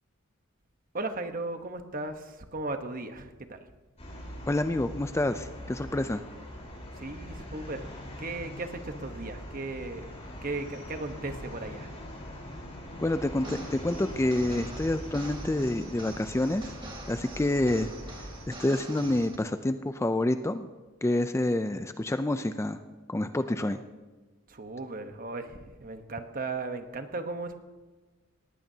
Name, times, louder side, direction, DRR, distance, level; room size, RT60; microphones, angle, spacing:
voice 1, 0.9-3.6 7.0-7.9 8.2-11.9 24.5-27.6, right 2 dB, 40° right, 7 dB, 1.1 m, -36 dB
sound 1, 4.0-18.5, equal, 30° left, 4.1 m, -42 dB
voice 2, 4.5-6.2 13.0-16.7 17.1-17.9 18.5-20.7 21.0-22.8 23.1-23.8, left 1 dB, 15° left, 10 dB, 0.4 m, -28 dB
sound 2, 13.4-19.4, right 2 dB, 25° right, 1.9 m, -45 dB
19.0 x 15.0 x 2.8 m, 1.3 s
head